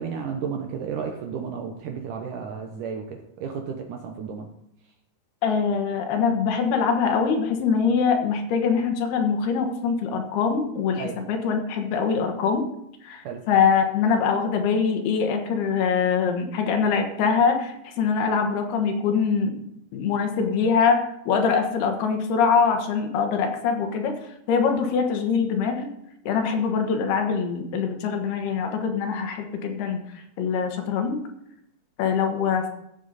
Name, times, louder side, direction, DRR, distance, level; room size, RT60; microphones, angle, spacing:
voice 1, 0.0-4.5 11.0-11.2 13.2-13.4, right 6 dB, 70° right, 3 dB, 2.2 m, -32 dB
voice 2, 5.4-12.6 13.0-19.6 19.9-24.2 24.5-25.9 26.3-31.2 32.0-32.7, left 6 dB, 90° left, 4 dB, 3.4 m, -23 dB
14.0 x 7.4 x 4.1 m, 0.78 s
omnidirectional pair, 4.4 m